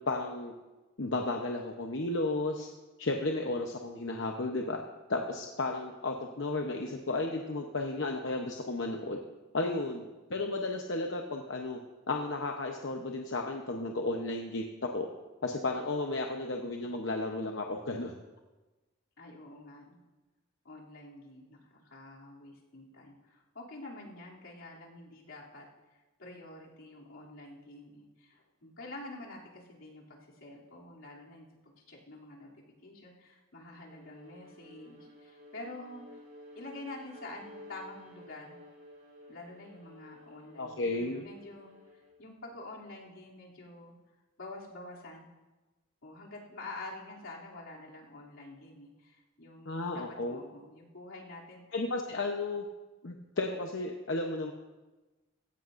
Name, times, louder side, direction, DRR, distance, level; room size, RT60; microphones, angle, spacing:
voice 1, 0.1-0.5 1.0-2.7 3.0-4.8 5.1-9.2 9.5-10.0 10.3-11.8 12.1-15.1 15.4-18.1 40.6-41.3 49.7-50.4 51.7-52.6 53.0-54.5, left 2 dB, 65° left, 2 dB, 0.9 m, -33 dB
voice 2, 9.6-9.9 19.2-20.0 20.6-25.7 26.2-32.5 32.8-36.0 36.5-38.6 39.3-41.7 42.2-43.9 44.4-45.3 46.0-51.6, left 2 dB, 85° left, -4 dB, 2.9 m, -47 dB
Bowed string instrument, 33.8-42.2, left 1 dB, 45° right, 3.4 m, -53 dB
16.0 x 15.5 x 2.6 m, 1.2 s
head